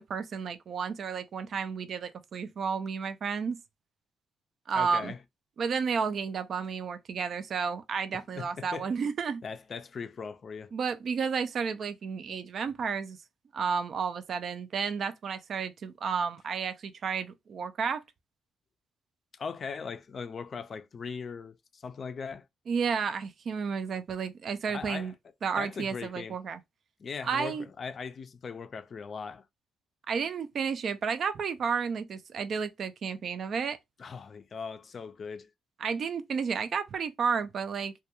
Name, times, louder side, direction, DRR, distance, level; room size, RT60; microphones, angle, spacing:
voice 1, 0.0-3.6 4.7-5.1 5.6-9.4 10.7-13.2 13.5-18.0 22.7-25.1 25.4-26.6 27.2-27.7 30.1-33.8 35.8-37.9, right 6 dB, 55° right, 0.3 m, -32 dB
voice 2, 4.7-5.2 8.1-8.9 9.4-10.7 19.3-22.5 24.7-25.1 25.6-26.4 27.0-29.5 34.0-35.5, left 5 dB, 45° left, 0.4 m, -39 dB
2.2 x 2.2 x 2.9 m
cardioid pair, 90°, 0 cm